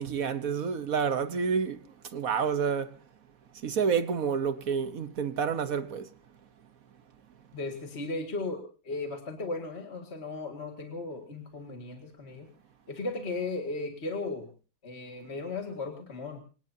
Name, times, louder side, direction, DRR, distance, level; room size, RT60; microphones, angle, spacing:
voice 1, 0.0-1.8 2.1-3.0 3.6-6.1, right 6 dB, 50° right, 1.2 m, -29 dB
voice 2, 7.5-12.5 12.9-14.5 14.8-16.4, left 3 dB, 30° left, 2.1 m, -36 dB
26.0 x 18.5 x 2.8 m
omnidirectional pair, 2.3 m